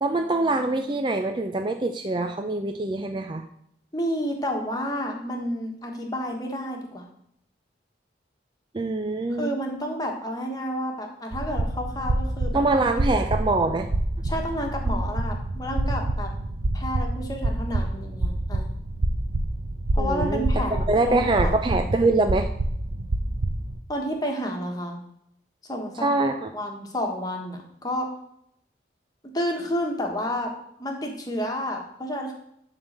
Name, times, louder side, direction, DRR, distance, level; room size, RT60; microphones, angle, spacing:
voice 1, 0.0-3.4 8.7-9.5 12.5-13.9 20.0-22.5 26.0-26.5, right 2 dB, 25° right, 5 dB, 0.5 m, -24 dB
voice 2, 3.9-7.1 9.4-12.6 14.2-16.3 16.7-18.7 19.9-21.5 23.9-25.0 25.7-26.1 26.5-28.1 29.3-30.5 30.8-32.3, equal, 20° left, 2 dB, 1.4 m, -30 dB
sound 1, 11.3-23.8, right 1 dB, 80° right, 0.8 m, -27 dB
11.5 x 3.9 x 6.5 m, 0.73 s
head